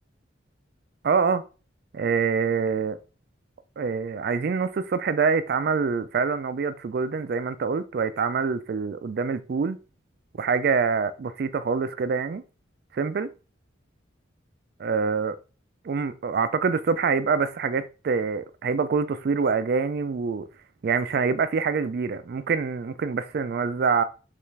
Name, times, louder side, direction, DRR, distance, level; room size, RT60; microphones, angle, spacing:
voice 1, 1.0-1.4 1.9-3.0 3.8-9.8 10.4-12.4 12.9-13.3 14.8-15.4 15.9-20.5 20.8-24.0, right 5 dB, 50° right, 0.3 m, -25 dB
5.5 x 2.5 x 3.1 m
head